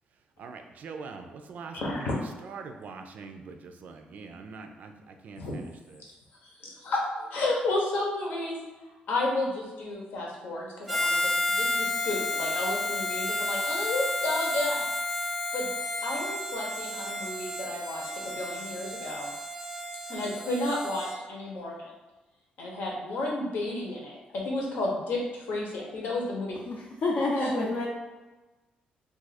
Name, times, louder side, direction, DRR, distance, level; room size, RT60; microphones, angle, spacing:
voice 1, 0.1-6.2, right 4 dB, 60° right, 5 dB, 0.4 m, -43 dB
voice 2, 1.7-2.2 5.4-5.6 6.4-8.6 9.1-14.9 15.5-15.7 16.0-19.3 20.1-21.9 22.6-26.5 27.4-27.5, left 2 dB, 80° left, -2 dB, 0.9 m, -32 dB
Harmonica, 10.9-21.2, left 2 dB, ahead, 0.6 m, -31 dB
voice 3, 27.0-27.9, left 2 dB, 55° left, -2 dB, 0.5 m, -27 dB
2.6 x 2.4 x 4.1 m, 1.1 s
cardioid pair, 115°, 3 cm